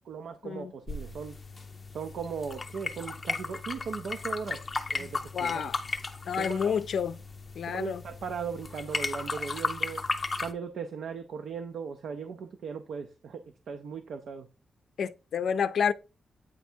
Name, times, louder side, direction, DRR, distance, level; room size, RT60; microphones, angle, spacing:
voice 1, 0.1-1.4 1.9-4.6 4.9-5.7 6.4-6.8 7.7-10.0 10.4-14.5, right 6 dB, 75° right, 0.6 m, -38 dB
sound 1, 0.9-10.5, left 3 dB, 25° left, 0.7 m, -35 dB
sound 2, 4.9-5.7 8.2-10.0, equal, 25° right, 2.3 m, -57 dB
voice 2, 5.3-5.8 6.3-7.2 7.6-8.0 15.0-15.9, left 7 dB, 70° left, 0.5 m, -29 dB
8.9 x 3.4 x 4.4 m
wide cardioid pair, 175°, 0 cm